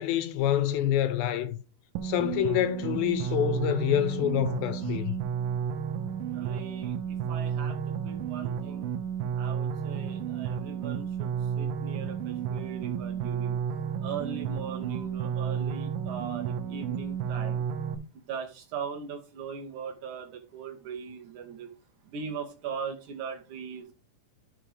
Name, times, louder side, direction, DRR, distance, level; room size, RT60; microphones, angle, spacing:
voice 1, 0.0-1.6 2.0-5.2, left 11 dB, 80° left, 2.5 m, -27 dB
sound 1, 2.0-18.0, right 8 dB, 85° right, 2.5 m, -32 dB
voice 2, 6.3-7.0 7.3-8.8 9.4-13.5 14.0-17.6 18.3-21.7 22.1-23.9, right 6 dB, 70° right, 2.2 m, -39 dB
12.5 x 5.0 x 3.4 m
omnidirectional pair, 4.3 m